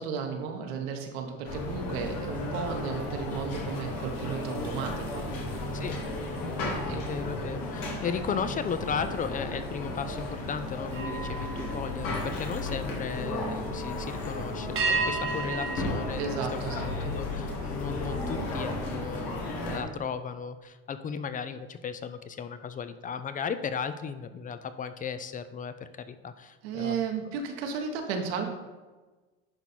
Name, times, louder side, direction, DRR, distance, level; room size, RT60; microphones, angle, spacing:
voice 1, 0.0-5.3 6.9-7.0 16.2-16.9 26.6-28.5, right 5 dB, 80° right, 3 dB, 1.4 m, -33 dB
sound 1, 1.4-19.8, left 2 dB, 80° left, 2.0 m, -34 dB
sound 2, 1.6-7.1 7.6-7.9 10.9-13.0 14.8-17.3, right 3 dB, 45° right, 1.3 m, -37 dB
voice 2, 6.4-27.0, left 6 dB, 25° left, 12 dB, 0.5 m, -36 dB
10.5 x 4.0 x 4.4 m, 1.2 s
supercardioid pair, 105°, 30 cm